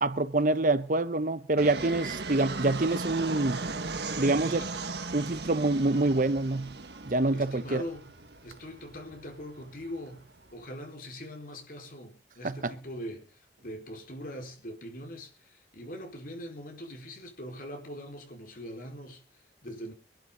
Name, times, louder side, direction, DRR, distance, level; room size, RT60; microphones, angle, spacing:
voice 1, 0.0-3.6 4.2-4.6 5.1-6.7 7.1-7.8 12.4-12.6, right 2 dB, 50° right, 0.9 m, -26 dB
Fixed-wing aircraft airplane, 1.6-10.6, right 3 dB, 70° right, 1.8 m, -38 dB
voice 2, 4.2-4.7 7.3-8.1 8.4-19.9, equal, 50° left, 4.5 m, -42 dB
24.5 x 11.5 x 3.9 m
head